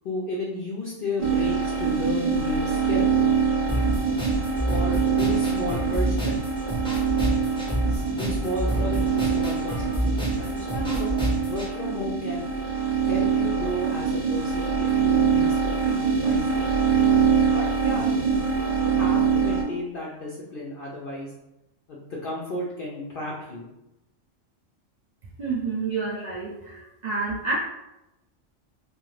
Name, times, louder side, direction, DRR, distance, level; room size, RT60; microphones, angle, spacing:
voice 1, 0.0-3.1 4.7-6.4 7.9-11.1 11.5-12.5 13.0-16.7 17.5-18.1 18.7-21.3 21.9-23.7, left 1 dB, 65° left, -4 dB, 0.5 m, -33 dB
sound 1, 1.2-19.6, right 6 dB, 50° right, 0.8 m, -24 dB
sound 2, 3.7-11.7, equal, 5° left, 0.5 m, -28 dB
voice 2, 25.4-27.6, right 4 dB, 70° right, -6 dB, 0.4 m, -29 dB
2.5 x 2.4 x 3.1 m, 0.93 s
omnidirectional pair, 1.3 m